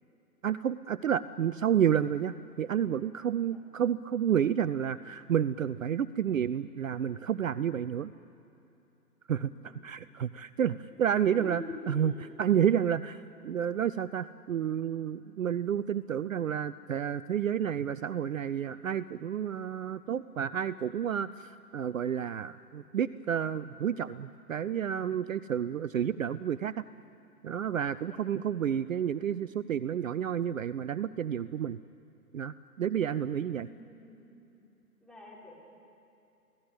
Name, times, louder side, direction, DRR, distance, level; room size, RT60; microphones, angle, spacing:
voice 1, 0.4-8.1 9.3-12.1 12.4-26.8 27.4-31.8 32.3-33.7, right 9 dB, 55° right, 17 dB, 0.6 m, -30 dB
voice 2, 9.4-9.8 10.9-11.0 11.4-12.2 28.0-28.2 33.3-34.3 35.0-35.5, left 1 dB, ahead, -6 dB, 4.7 m, -46 dB
28.5 x 18.0 x 8.3 m, 2.9 s
hypercardioid pair, 145°, 49 cm